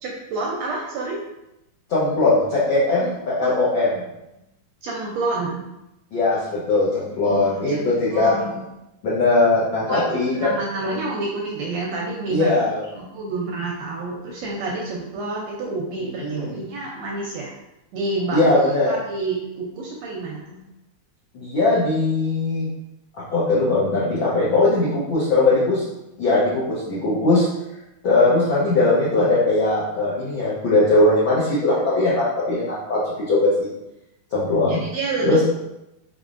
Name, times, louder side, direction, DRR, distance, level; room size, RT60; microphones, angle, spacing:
voice 1, 0.0-1.2 3.0-3.5 4.8-5.6 7.0-8.6 9.9-12.5 12.9-17.5 17.9-18.4 18.9-20.6 34.7-35.4, right 3 dB, 80° right, -2 dB, 1.6 m, -29 dB
voice 2, 1.9-3.9 6.1-8.4 9.0-10.3 10.8-10.9 12.3-12.8 16.2-16.5 18.3-18.9 21.3-22.7 23.3-25.8 26.2-27.5 28.0-33.0 33.3-33.7 34.3-34.8 35.2-35.4, left 2 dB, 85° left, -8 dB, 1.0 m, -19 dB
4.5 x 3.8 x 2.5 m, 0.91 s
omnidirectional pair, 3.6 m